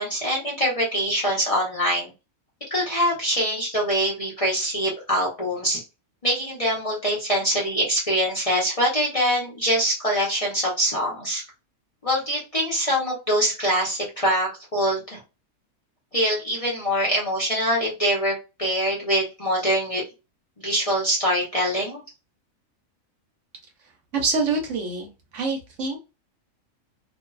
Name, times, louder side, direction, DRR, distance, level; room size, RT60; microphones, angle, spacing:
voice 1, 0.0-2.1 2.7-5.8 6.2-11.4 12.0-15.2 16.1-18.3 18.6-20.1 20.6-22.0, equal, 30° left, -4 dB, 0.7 m, -24 dB
voice 2, 24.1-26.0, right 3 dB, 65° right, 3 dB, 1.0 m, -26 dB
2.6 x 2.3 x 2.3 m, 0.28 s
omnidirectional pair, 1.4 m